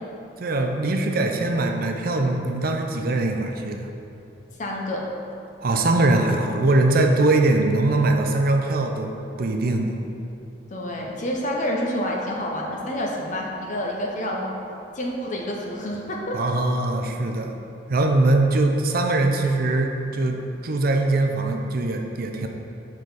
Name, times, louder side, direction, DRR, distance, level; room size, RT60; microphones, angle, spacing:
voice 1, 0.4-3.9 5.6-9.1 9.4-10.0 16.3-17.5 17.9-22.5, right 2 dB, 55° right, 3 dB, 0.5 m, -22 dB
voice 2, 4.6-5.0 10.7-14.5 14.9-16.4, left 1 dB, 45° left, -1 dB, 0.8 m, -28 dB
6.5 x 4.9 x 4.0 m, 2.8 s
head